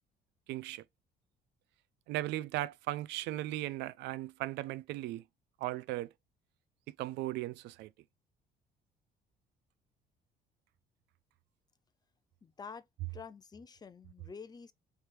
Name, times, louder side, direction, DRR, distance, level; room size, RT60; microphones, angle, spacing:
voice 1, 0.5-0.8 2.1-5.2 5.6-6.1 6.9-7.9, right 16 dB, 80° right, 0.4 m, -37 dB
voice 2, 12.4-12.9 13.1-14.7, left 5 dB, 25° left, 0.5 m, -48 dB
3.4 x 3.1 x 4.5 m
cardioid pair, 110°, 17 cm